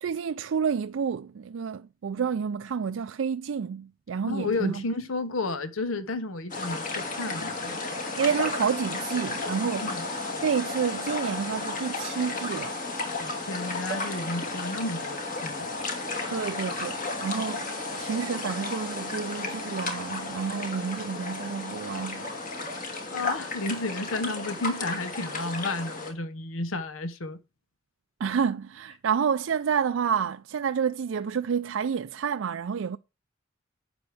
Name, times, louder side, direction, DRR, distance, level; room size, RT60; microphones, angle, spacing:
voice 1, 0.0-4.8 8.2-9.9 10.4-12.7 16.3-22.3 28.2-33.0, right 6 dB, 75° right, 0.4 m, -29 dB
voice 2, 4.2-7.8 9.8-10.1 13.2-15.7 22.8-27.4, left 2 dB, 90° left, 0.9 m, -32 dB
sound 1, 6.5-26.1, left 3 dB, 40° left, 2.3 m, -33 dB
11.5 x 8.0 x 3.4 m
head